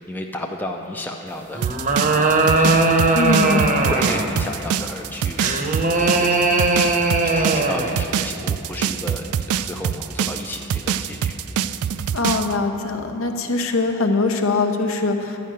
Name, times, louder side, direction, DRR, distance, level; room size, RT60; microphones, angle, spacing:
voice 1, 0.1-1.6 2.6-2.9 3.8-5.7 5.9-6.5 7.0-9.2 9.6-11.3, left 1 dB, 10° left, 1 dB, 0.5 m, -33 dB
sound 1, 1.5-4.4 5.4-8.0, right 2 dB, 35° right, 0.8 m, -19 dB
sound 2, 1.6-12.5, right 8 dB, 75° right, 0.3 m, -24 dB
voice 2, 3.1-3.6 12.1-15.4, left 3 dB, 65° left, 5 dB, 0.9 m, -22 dB
11.0 x 5.6 x 8.8 m, 2.8 s
head